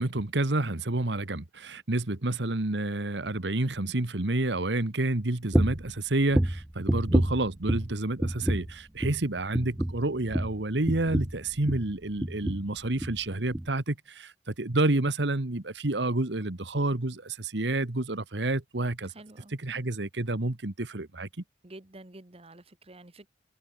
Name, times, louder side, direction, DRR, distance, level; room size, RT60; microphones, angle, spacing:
voice 1, 0.0-19.1 19.5-21.3, right 2 dB, 75° right, 1.6 m, -29 dB
sound 1, 5.5-5.9 6.3-7.9 8.2-8.7 9.0-9.3 9.5-11.9 12.2-12.7 13.0-13.2 13.5-13.7, right 1 dB, 10° right, 0.4 m, -28 dB
voice 2, 19.0-19.6 21.6-23.3, right 2 dB, 35° right, 1.5 m, -49 dB
head